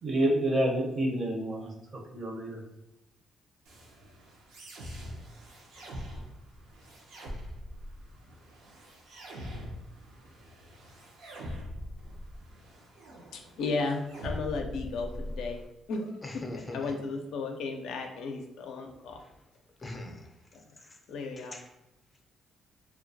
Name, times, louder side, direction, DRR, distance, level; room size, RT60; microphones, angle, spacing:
voice 1, 0.0-2.6, right 1 dB, 40° right, 0.6 m, -29 dB
sound 1, 3.7-15.7, equal, 85° right, 0.6 m, -43 dB
voice 2, 13.3-15.6 15.9-16.2 16.7-19.2 21.1-21.6, left 3 dB, 80° left, 0.4 m, -34 dB
voice 3, 16.2-17.0 19.2-19.3 19.8-20.3 20.8-21.0 21.4-21.7, left 2 dB, 25° left, 0.5 m, -42 dB
2.2 x 2.2 x 2.6 m
cardioid pair, 90°, 0 cm